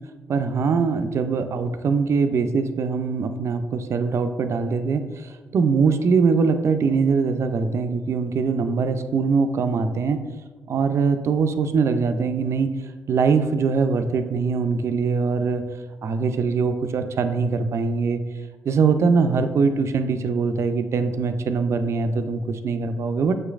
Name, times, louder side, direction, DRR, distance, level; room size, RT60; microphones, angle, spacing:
voice 1, 0.3-10.2 10.7-12.7 13.1-15.6 16.0-18.2 18.7-23.3, right 5 dB, 55° right, 9 dB, 0.4 m, -22 dB
6.3 x 3.1 x 2.4 m, 1.3 s
supercardioid pair, 65°, 6 cm